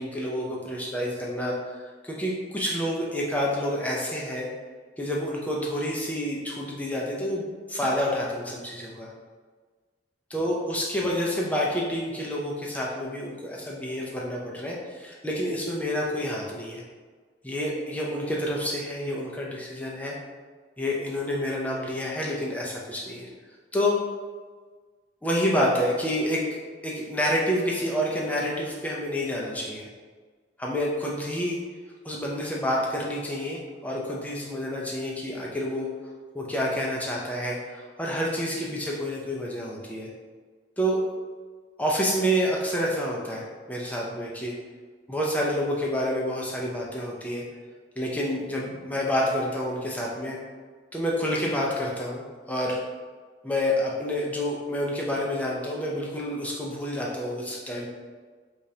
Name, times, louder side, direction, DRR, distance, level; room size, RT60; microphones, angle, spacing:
voice 1, 0.0-4.5 5.0-9.1 10.3-16.8 17.4-20.2 20.8-23.3 23.7-24.0 25.2-29.9 30.6-31.6 32.0-35.9 36.3-40.1 40.8-41.0 41.8-44.5 45.1-47.4 48.0-50.4 50.9-52.8 53.4-57.9, equal, 10° left, -3 dB, 0.6 m, -28 dB
4.9 x 2.5 x 2.8 m, 1.5 s
head